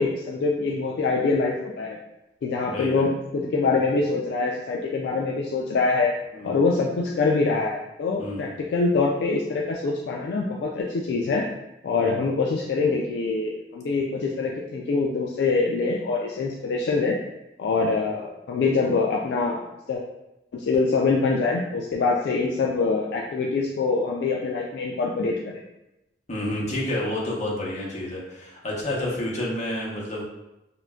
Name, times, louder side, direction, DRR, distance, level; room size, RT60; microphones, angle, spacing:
voice 1, 0.0-2.0 2.4-6.1 6.4-11.5 11.8-17.2 17.6-19.6 19.9-20.0 20.5-25.4, left 4 dB, 65° left, -2 dB, 0.3 m, -24 dB
voice 2, 2.7-3.1 6.3-6.6 8.2-8.5 12.0-12.2 26.3-30.2, left 1 dB, 40° left, -4 dB, 0.7 m, -29 dB
3.7 x 2.1 x 2.2 m, 0.94 s
head